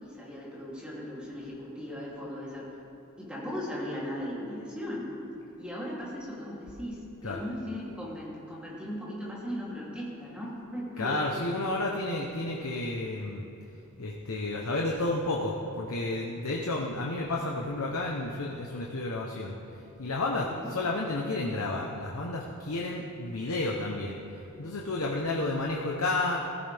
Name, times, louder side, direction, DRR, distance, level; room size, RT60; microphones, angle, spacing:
voice 1, 0.0-2.7 3.2-5.1 5.6-11.2 20.2-20.7, equal, 5° right, -7 dB, 3.1 m, -38 dB
voice 2, 11.0-13.4 14.0-19.6 20.0-24.2 24.6-26.4, left 2 dB, 75° left, -1 dB, 1.0 m, -31 dB
16.0 x 15.0 x 3.5 m, 2.9 s
head